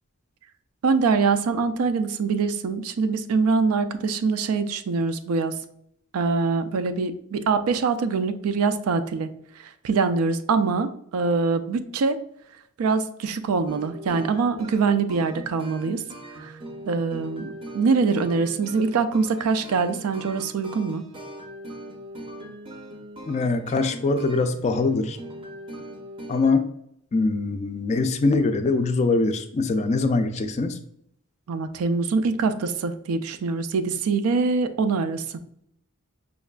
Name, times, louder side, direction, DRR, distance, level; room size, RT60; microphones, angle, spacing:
voice 1, 0.8-5.5 6.1-9.3 9.8-12.2 12.8-16.0 16.4-16.5 16.9-21.0 31.5-35.4, right 4 dB, 90° right, 10 dB, 0.4 m, -24 dB
sound 1, 13.7-26.5, right 1 dB, 25° right, 0.5 m, -40 dB
voice 2, 23.3-25.2 26.3-26.7 27.1-30.8, left 3 dB, 30° left, 8 dB, 0.3 m, -23 dB
5.1 x 2.4 x 2.2 m, 0.73 s
head